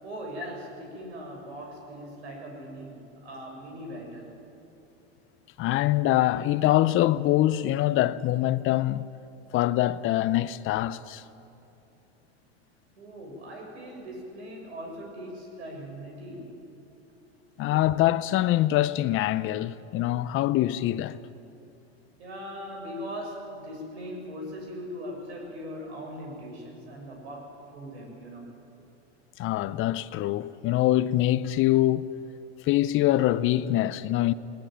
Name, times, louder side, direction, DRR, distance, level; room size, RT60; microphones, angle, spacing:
voice 1, 0.0-4.4 13.0-16.6 22.2-28.6, equal, 85° right, 7.1 m, -40 dB
voice 2, 5.6-9.1 9.5-11.2 17.6-21.2 29.4-32.1 32.6-34.3, left 14 dB, 40° left, 0.7 m, -24 dB
19.5 x 19.0 x 9.3 m
hypercardioid pair, 110°, 32 cm